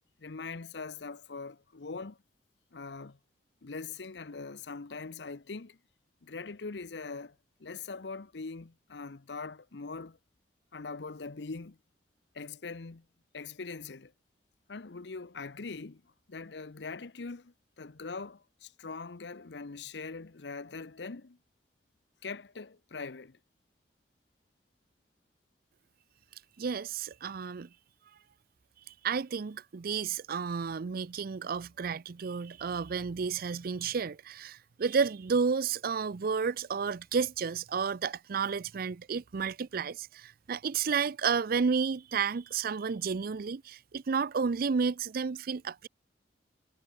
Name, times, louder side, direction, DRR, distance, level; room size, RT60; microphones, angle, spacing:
voice 1, 0.2-2.2 2.7-3.2 3.6-5.8 6.2-10.2 10.7-11.8 12.3-13.1 13.3-14.1 14.7-21.4 22.2-23.4, left 4 dB, 70° left, 0.8 m, -42 dB
voice 2, 26.6-27.7 29.0-45.9, right 5 dB, 55° right, 0.5 m, -31 dB
head